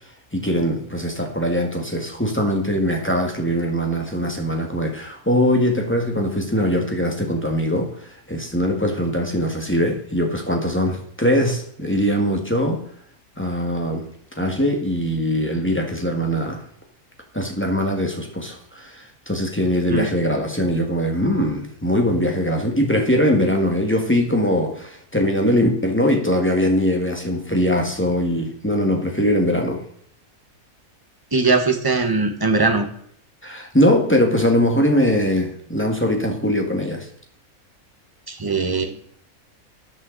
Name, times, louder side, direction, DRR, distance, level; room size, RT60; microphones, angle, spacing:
voice 1, 0.3-12.8 13.4-14.1 14.4-16.6 17.3-29.8 33.4-37.1, equal, 10° left, 2 dB, 1.8 m, -21 dB
voice 2, 31.3-32.9 38.3-39.1, right 3 dB, 15° right, 5 dB, 1.2 m, -20 dB
12.5 x 8.6 x 4.1 m, 0.63 s
omnidirectional pair, 1.5 m